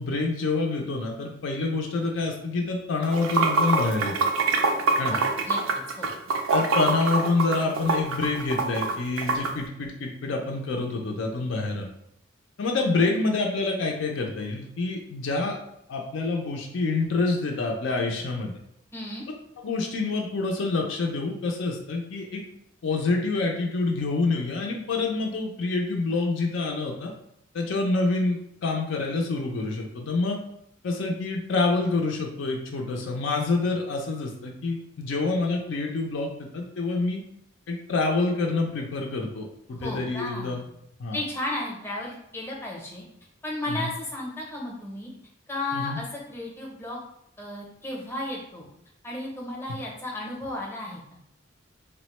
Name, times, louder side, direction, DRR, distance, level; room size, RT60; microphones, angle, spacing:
voice 1, 0.0-4.2 5.0-5.1 6.5-11.9 12.6-15.6 15.9-18.5 19.6-22.4 22.8-27.1 27.5-30.4 30.8-37.2 37.7-40.6 41.0-41.2 43.7-43.9 45.7-46.0, left 3 dB, 65° left, 1 dB, 0.4 m, -27 dB
Water / Sink (filling or washing), 3.0-9.5, right 4 dB, 75° right, 0.4 m, -24 dB
voice 2, 5.1-5.6 6.0-6.1 18.9-19.2 39.7-40.6 41.1-43.0 43.4-45.1 45.5-47.0 47.4-48.7 49.0-51.0, left 1 dB, 10° left, -3 dB, 0.6 m, -34 dB
3.4 x 2.1 x 3.0 m, 0.75 s
head